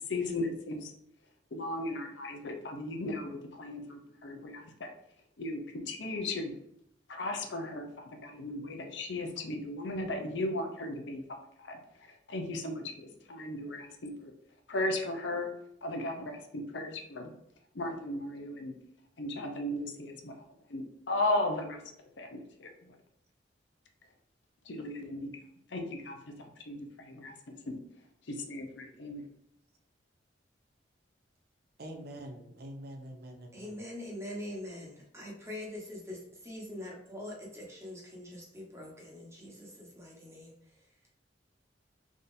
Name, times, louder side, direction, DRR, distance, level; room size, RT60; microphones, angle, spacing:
voice 1, 0.1-0.9 1.5-4.9 5.4-6.6 7.1-11.8 12.3-14.3 14.7-15.5 15.8-17.3 17.7-18.7 19.2-20.3 20.7-21.8 22.2-23.0 24.7-25.3 25.7-27.8 28.3-29.2, left 2 dB, 70° left, 4 dB, 0.7 m, -36 dB
voice 2, 31.8-33.8, right 1 dB, 60° right, 3 dB, 0.7 m, -45 dB
voice 3, 33.5-40.5, left 1 dB, 15° right, -3 dB, 1.2 m, -43 dB
4.0 x 3.6 x 2.6 m, 0.76 s
head